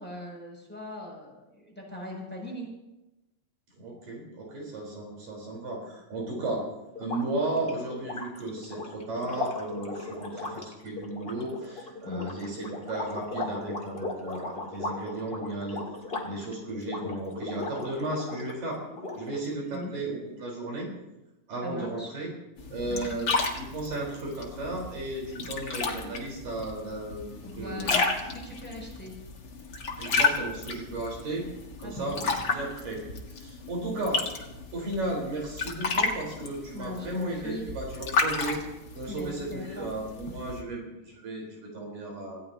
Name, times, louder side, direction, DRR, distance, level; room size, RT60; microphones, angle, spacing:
voice 1, 0.0-2.7 12.0-12.3 19.7-19.9 21.6-22.1 22.9-23.2 27.4-28.1 28.3-29.2 31.8-32.3 36.7-37.7 39.1-39.9, left 1 dB, 5° left, -2 dB, 6.6 m, -40 dB
voice 2, 3.8-6.7 7.0-15.8 16.2-18.8 19.2-20.9 21.5-22.3 22.7-27.9 30.0-31.4 31.8-33.0 33.4-34.2 34.7-38.6 38.9-42.5, right 2 dB, 70° right, -1 dB, 5.9 m, -34 dB
sound 1, 7.0-18.6 18.9-19.7, left 3 dB, 20° left, 1.6 m, -37 dB
sound 2, 22.6-40.6, left 3 dB, 40° left, 1.7 m, -32 dB
27.0 x 16.5 x 2.9 m, 0.97 s
omnidirectional pair, 4.0 m